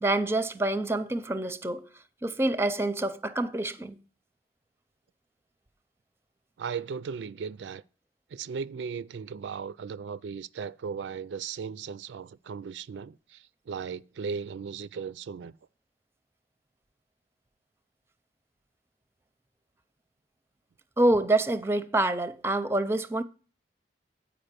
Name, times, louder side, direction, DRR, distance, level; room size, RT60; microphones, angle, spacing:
voice 1, 0.0-1.9 2.2-4.0 21.0-23.2, right 2 dB, 15° right, 0.5 m, -26 dB
voice 2, 6.6-7.8 8.3-15.5, right 6 dB, 90° right, 0.4 m, -37 dB
8.9 x 5.0 x 6.6 m
head